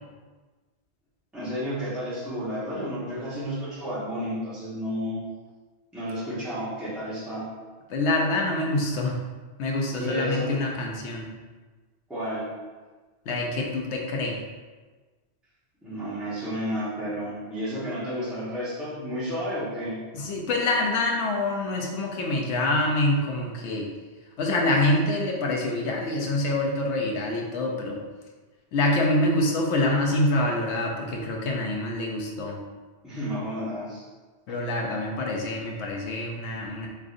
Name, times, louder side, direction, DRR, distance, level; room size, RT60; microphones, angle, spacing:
voice 1, 1.3-5.2 5.9-7.5 9.9-10.6 12.1-12.5 15.8-20.0 33.0-34.0, equal, ahead, -12 dB, 1.2 m, -31 dB
voice 2, 7.9-9.2 9.6-11.3 13.3-14.4 20.1-23.9 24.4-28.0 28.7-32.6 34.5-36.9, left 2 dB, 90° left, 0 dB, 0.9 m, -26 dB
3.6 x 3.4 x 2.5 m, 1.3 s
omnidirectional pair, 1.1 m